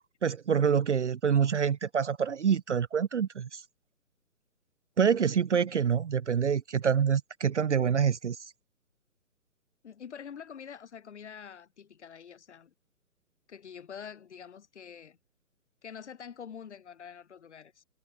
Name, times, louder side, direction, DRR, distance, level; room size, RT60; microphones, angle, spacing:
voice 1, 0.2-3.6 5.0-8.4, right 7 dB, 50° right, 0.6 m, -26 dB
voice 2, 9.8-12.7 13.5-15.2 15.8-17.8, left 7 dB, 50° left, 5.0 m, -46 dB
figure-of-eight pair, 140°, 45 cm